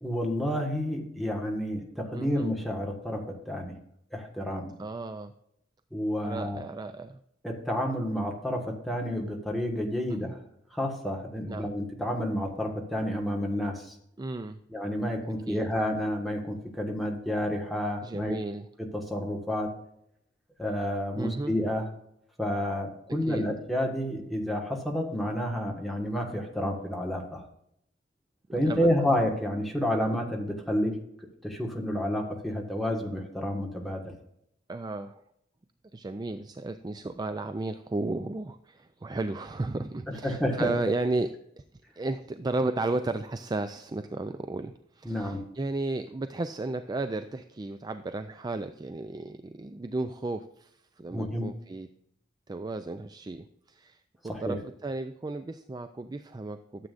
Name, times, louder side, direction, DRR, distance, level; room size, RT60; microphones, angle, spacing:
voice 1, 0.0-3.7 4.1-4.7 5.9-6.6 7.4-10.3 10.7-13.9 14.7-18.4 18.9-19.7 20.6-21.8 22.4-27.4 28.5-30.9 31.4-34.0 40.1-40.7 45.0-45.4 51.1-51.5 54.3-54.6, equal, ahead, 1 dB, 1.5 m, -30 dB
voice 2, 2.1-2.5 4.8-5.3 6.2-7.2 10.1-10.4 11.5-11.7 14.2-14.6 15.5-15.6 18.0-18.7 21.2-21.6 23.2-23.5 28.5-29.2 34.7-35.2 35.9-41.3 42.0-51.9 52.5-56.9, right 2 dB, 20° right, 9 dB, 0.4 m, -34 dB
12.5 x 7.5 x 2.5 m, 0.75 s
head